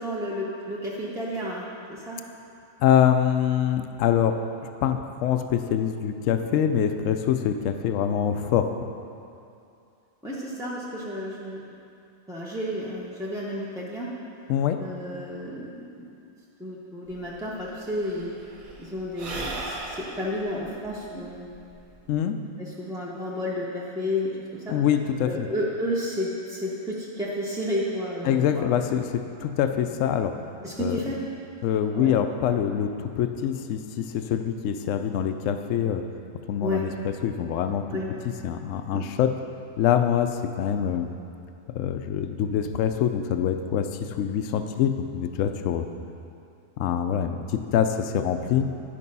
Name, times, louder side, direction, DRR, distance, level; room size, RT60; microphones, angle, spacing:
voice 1, 0.0-2.2 10.2-11.6 12.3-14.1 14.8-16.1 16.6-18.3 18.8-21.5 22.2-22.3 22.6-24.7 25.3-28.7 30.6-31.2 31.9-32.2 36.6-36.8 37.9-38.1 38.9-39.0, left 1 dB, 5° right, -8 dB, 0.6 m, -31 dB
voice 2, 2.8-4.4 4.8-8.7 14.5-14.8 22.1-22.4 24.7-25.5 28.2-30.3 30.8-31.0 31.6-36.0 36.5-38.0 38.4-39.3 39.8-41.1 41.7-45.9 46.8-48.7, left 9 dB, 70° left, 8 dB, 0.9 m, -24 dB
Sigh / Breathing, 17.1-17.2 17.4-22.1, right 2 dB, 75° right, 1.5 m, -38 dB
11.0 x 5.3 x 5.4 m, 2.6 s
omnidirectional pair, 1.5 m